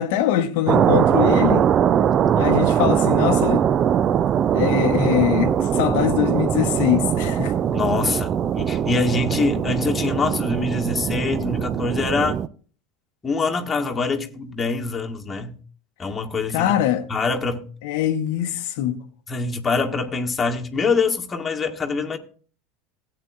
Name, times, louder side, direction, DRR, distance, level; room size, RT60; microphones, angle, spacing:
voice 1, 0.0-1.7 2.3-3.6 4.5-7.5 16.5-17.1 17.8-19.0, left 11 dB, 60° left, 0.8 m, -22 dB
sound 1, 0.7-12.5, right 9 dB, 35° right, 0.4 m, -21 dB
voice 2, 7.7-12.4 13.2-15.6 16.0-16.7 17.1-17.6 19.3-22.2, left 4 dB, 20° left, 1.6 m, -24 dB
17.0 x 8.7 x 2.5 m
figure-of-eight pair, 75°, 0 cm